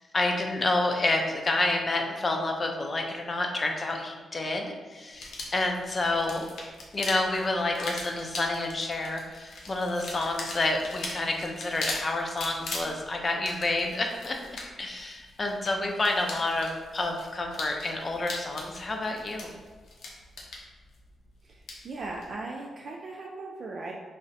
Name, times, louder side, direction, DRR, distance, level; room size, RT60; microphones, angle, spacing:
voice 1, 0.1-6.5 6.9-14.5 14.8-19.5, left 2 dB, 35° left, 3 dB, 0.4 m, -29 dB
sound 1, 5.1-22.3, left 2 dB, 85° left, 0.5 m, -41 dB
voice 2, 21.4-23.9, right 3 dB, 55° right, -2 dB, 0.3 m, -38 dB
3.8 x 2.1 x 2.6 m, 1.4 s
cardioid pair, 90°, 0 cm